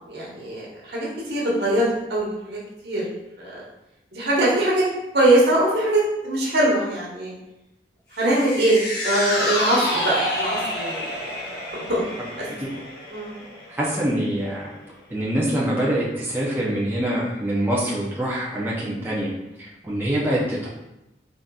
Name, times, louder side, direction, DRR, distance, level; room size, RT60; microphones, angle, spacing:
voice 1, 0.1-3.0 3.4-3.6 4.1-4.8 5.1-7.3 8.1-11.6 11.9-12.0 12.4-12.5 13.1-13.4, right 1 dB, 75° right, -5 dB, 1.3 m, -22 dB
sound 1, 8.2-14.6 15.0-15.1, left 1 dB, 70° left, 1.0 m, -29 dB
voice 2, 13.7-14.7 15.1-19.3 19.6-20.7, right 1 dB, 10° right, -6 dB, 0.6 m, -25 dB
4.0 x 3.8 x 2.3 m, 0.92 s
head